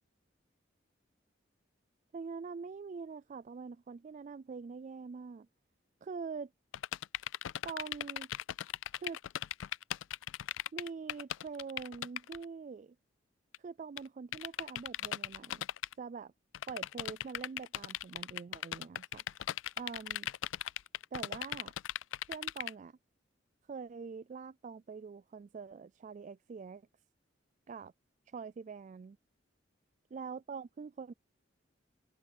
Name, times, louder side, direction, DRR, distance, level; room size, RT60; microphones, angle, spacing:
voice 1, 2.1-5.5 6.0-6.5 7.6-8.3 8.9-9.2 10.7-13.0 13.6-15.6 16.0-16.3 16.7-19.2 19.8-20.3 21.1-21.7 22.3-23.0 23.7-26.8 27.7-27.9 28.3-29.2 30.1-31.1, right 5 dB, 40° right, 0.3 m, -44 dB
sound 1, 6.7-12.4 13.5-13.6 14.0-14.1 14.3-15.9 16.5-22.7, left 12 dB, 90° left, 0.4 m, -38 dB
open air
head